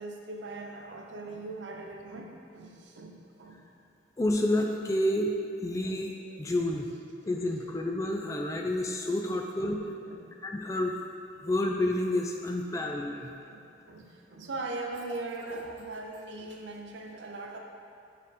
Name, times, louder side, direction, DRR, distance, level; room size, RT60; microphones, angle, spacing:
voice 1, 0.0-3.6 5.9-6.0 6.3-6.4 9.3-10.3 12.7-17.6, right 2 dB, 70° right, 2 dB, 0.6 m, -41 dB
voice 2, 4.2-5.3 5.6-6.9 7.3-9.8 10.4-10.9 11.4-13.3, left 1 dB, 15° left, 1 dB, 0.3 m, -29 dB
6.4 x 3.6 x 4.1 m, 2.4 s
head